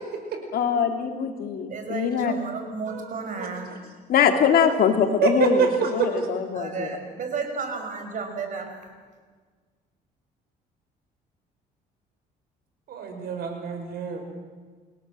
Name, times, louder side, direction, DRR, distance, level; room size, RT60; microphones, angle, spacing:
voice 1, 0.5-2.3 4.1-6.9, left 7 dB, 65° left, 5 dB, 2.7 m, -22 dB
voice 2, 1.7-3.7 6.5-8.7, right 4 dB, 50° right, 5 dB, 5.4 m, -32 dB
voice 3, 2.9-3.5 5.2-6.1 12.9-14.2, right 7 dB, 65° right, 5 dB, 5.3 m, -27 dB
28.5 x 17.5 x 7.6 m, 1.5 s
cardioid pair, 110°, 17 cm